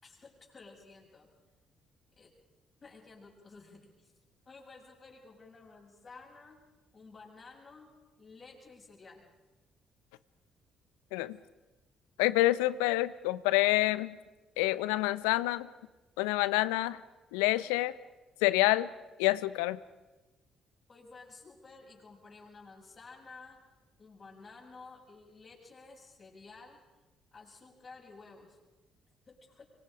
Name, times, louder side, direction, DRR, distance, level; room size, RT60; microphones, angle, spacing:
voice 1, 0.0-1.3 2.2-2.3 2.8-4.1 4.4-6.6 6.9-7.9 8.2-9.3 20.9-23.6 24.0-26.8 27.3-28.6 29.3-29.7, left 4 dB, 40° left, -1 dB, 7.9 m, -53 dB
voice 2, 12.2-14.2 14.6-15.7 16.2-17.0 17.3-17.9 18.4-18.9 19.2-19.8, left 18 dB, 75° left, 17 dB, 0.7 m, -27 dB
25.0 x 25.0 x 5.2 m, 1.1 s
hypercardioid pair, 45°, 0 cm